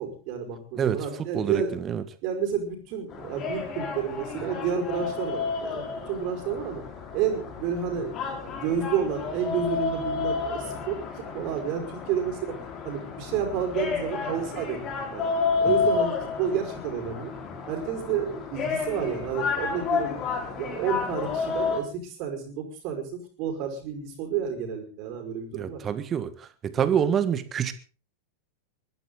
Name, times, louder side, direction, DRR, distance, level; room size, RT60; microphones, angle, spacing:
voice 1, 0.0-1.8 2.2-6.8 7.1-8.2 8.5-12.6 12.8-15.3 15.6-17.3 17.7-20.2 20.6-25.8, right 7 dB, 40° right, 4 dB, 5.3 m, -30 dB
sound 1, 3.1-21.8, left 5 dB, 30° left, 4.6 m, -31 dB
voice 2, 25.6-26.3 26.6-27.7, right 8 dB, 25° right, 13 dB, 1.7 m, -25 dB
22.0 x 14.5 x 4.0 m, 0.36 s
figure-of-eight pair, 90°, 0 cm